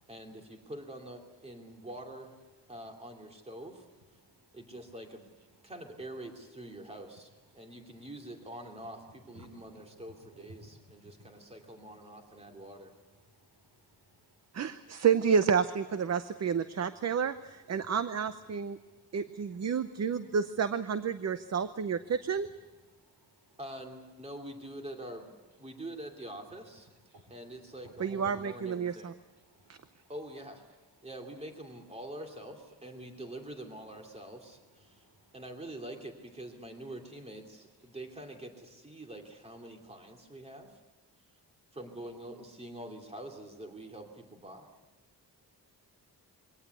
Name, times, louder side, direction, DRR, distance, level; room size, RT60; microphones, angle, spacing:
voice 1, 0.1-2.3 2.7-3.9 4.5-5.3 5.6-12.9 23.6-25.3 25.6-26.9 27.3-29.2 30.1-30.6 31.0-35.1 35.3-40.8 41.7-44.7, right 1 dB, 15° right, 2 dB, 2.8 m, -45 dB
voice 2, 6.6-7.2 7.5-7.8 8.5-12.0 12.4-12.5 17.2-17.3 17.6-17.9 18.6-18.8 19.3-19.5 19.8-20.6 21.7-22.9 23.7-23.8 26.4-28.8 29.1-29.8 30.2-30.3 34.7-35.6 36.3-36.4, right 1 dB, 65° right, 8 dB, 3.7 m, -59 dB
voice 3, 14.5-18.8 19.1-22.5 28.0-29.1, right 6 dB, 40° right, 12 dB, 0.7 m, -30 dB
23.5 x 18.0 x 8.3 m, 1.2 s
wide cardioid pair, 150°, 39 cm